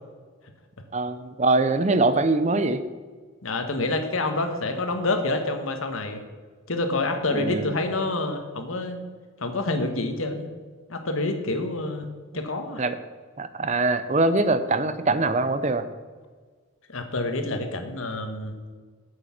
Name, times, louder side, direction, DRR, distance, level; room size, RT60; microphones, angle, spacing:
voice 1, 0.9-2.8 7.3-7.7 12.8-13.0 13.4-15.9, right 2 dB, 35° right, 12 dB, 0.6 m, -23 dB
voice 2, 3.4-6.2 6.7-9.0 9.4-10.5 10.9-12.1 12.3-12.8 16.9-18.6, left 2 dB, 75° left, 6 dB, 1.3 m, -27 dB
8.2 x 7.9 x 5.9 m, 1.5 s
head